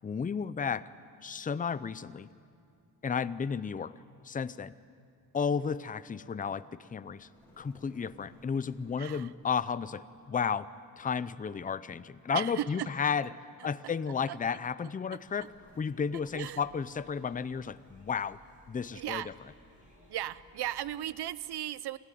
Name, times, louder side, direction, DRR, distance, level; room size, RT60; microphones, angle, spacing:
voice 1, 0.0-0.9 1.2-2.3 3.0-3.9 4.2-4.7 5.3-7.3 7.6-10.7 11.0-13.3 13.6-15.5 15.8-18.4 18.7-19.2, left 6 dB, 20° left, 15 dB, 0.5 m, -33 dB
sound 1, 7.0-10.2 10.5-10.6 11.9-13.9 14.2-14.3 15.4-15.8, left 1 dB, 5° left, 7.1 m, -63 dB
voice 2, 9.0-9.3 12.3-12.9 13.6-13.7 14.3-14.4 14.8-15.2 16.3-16.6 18.9-19.3 20.1-22.0, right 12 dB, 85° right, 18 dB, 0.7 m, -36 dB
sound 2, 15.2-21.2, equal, 20° right, 6.9 m, -60 dB
26.0 x 14.5 x 10.0 m, 2.3 s
wide cardioid pair, 135°, 38 cm